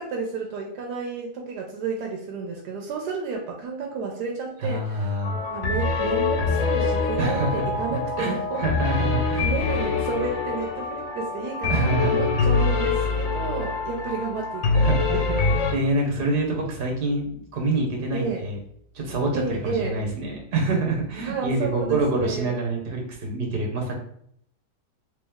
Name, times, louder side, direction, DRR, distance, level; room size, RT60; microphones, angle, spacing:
voice 1, 0.0-8.6 9.4-15.6 18.1-18.4 19.3-20.0 21.2-22.5, right 4 dB, 85° right, 1 dB, 1.2 m, -31 dB
voice 2, 4.6-5.4 7.2-7.6 7.9-9.5 11.7-12.4 14.7-18.6 18.9-23.9, right 2 dB, 50° right, 0 dB, 0.7 m, -26 dB
sound 1, 5.2-15.7, left 4 dB, 60° left, 0.8 m, -25 dB
3.1 x 3.1 x 3.5 m, 0.68 s
omnidirectional pair, 1.7 m